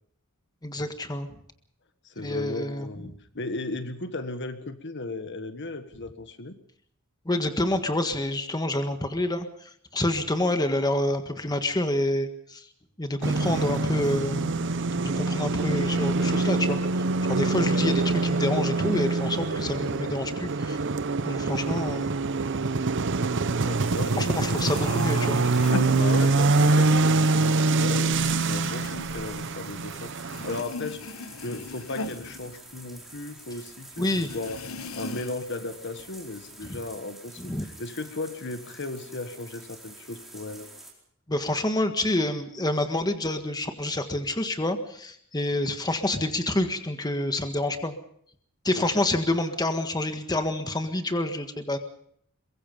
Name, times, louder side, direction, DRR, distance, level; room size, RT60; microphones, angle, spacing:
voice 1, 0.6-1.3 2.2-3.1 7.2-12.7 13.0-20.8 21.2-22.1 24.2-25.4 34.0-34.3 36.6-36.8 37.4-37.6 41.3-47.9 48.6-51.8, left 1 dB, 20° left, 7 dB, 1.6 m, -28 dB
voice 2, 2.0-6.6 23.6-24.7 25.9-31.0 31.4-34.7 34.9-40.7 48.7-49.0, left 2 dB, 60° left, 9 dB, 1.5 m, -36 dB
sound 1, 13.2-30.6, right 3 dB, 60° right, 0.8 m, -25 dB
sound 2, 23.8-40.9, right 1 dB, ahead, 4.5 m, -47 dB
sound 3, 24.5-26.7 27.0-30.0 30.3-33.3 33.5-33.6 34.1-35.6 36.0-36.7, left 2 dB, 75° left, 1.0 m, -38 dB
23.0 x 22.0 x 5.4 m, 0.65 s
head